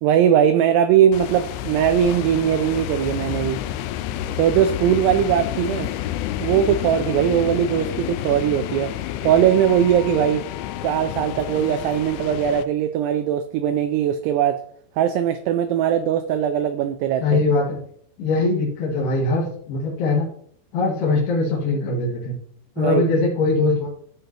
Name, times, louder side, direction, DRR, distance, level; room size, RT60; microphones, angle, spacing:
voice 1, 0.0-3.6 4.4-5.9 6.4-8.9 9.2-10.5 10.8-14.6 15.0-17.4 22.8-23.0, right 9 dB, 85° right, 2.4 m, -20 dB
sound 1, 1.1-12.6, left 13 dB, 85° left, 2.8 m, -29 dB
voice 2, 17.2-17.8 18.2-20.3 20.7-22.4 22.8-23.9, left 3 dB, 65° left, 3.5 m, -21 dB
14.5 x 5.2 x 2.9 m
omnidirectional pair, 5.3 m